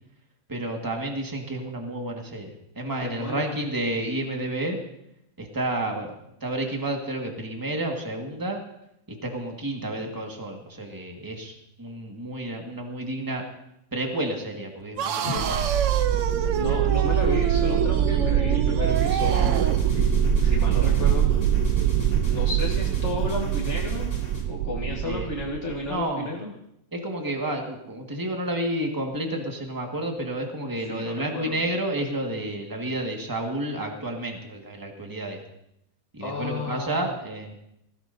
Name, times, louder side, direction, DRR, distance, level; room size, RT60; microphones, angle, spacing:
voice 1, 0.5-4.8 5.4-6.1 6.4-8.6 9.1-13.4 13.9-15.7 16.7-17.0 25.0-25.3 25.9-26.3 26.9-35.4 36.1-37.5, right 1 dB, 15° right, 1 dB, 1.7 m, -30 dB
voice 2, 3.0-3.5 15.2-15.5 16.5-19.6 20.4-21.3 22.3-24.1 24.5-26.5 30.9-31.6 36.2-37.1, left 2 dB, 50° left, -3 dB, 1.9 m, -32 dB
sound 1, 15.0-19.9, right 8 dB, 65° right, 1.0 m, -28 dB
sound 2, 15.4-26.0, right 9 dB, 90° right, 1.2 m, -23 dB
sound 3, 18.9-24.5, left 2 dB, 85° left, 2.7 m, -46 dB
19.5 x 16.0 x 2.7 m, 0.81 s
omnidirectional pair, 1.5 m